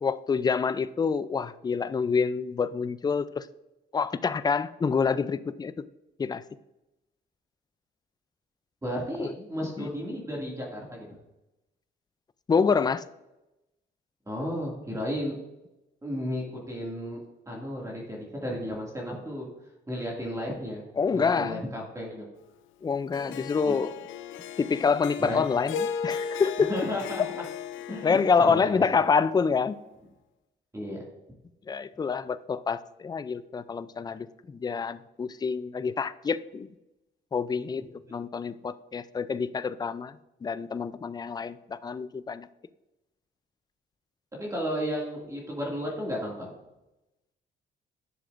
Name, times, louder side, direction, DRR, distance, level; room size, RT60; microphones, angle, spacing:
voice 1, 0.0-3.5 3.9-5.7 6.2-6.4 9.2-9.3 9.8-9.9 12.5-13.0 21.0-21.6 22.8-23.9 24.6-26.7 27.9-29.8 31.7-36.7 37.3-40.2 40.4-42.5, left 5 dB, 20° left, 0.4 m, -27 dB
voice 2, 8.8-11.1 14.3-15.4 16.0-17.2 17.5-19.5 19.9-22.3 23.5-23.7 25.3-25.4 26.7-27.4 27.9-29.0 30.7-31.0 44.3-46.5, equal, 15° right, 2.2 m, -33 dB
Harp, 23.1-29.5, left 7 dB, 80° left, 0.5 m, -37 dB
11.0 x 6.5 x 2.5 m
cardioid pair, 90°, 20 cm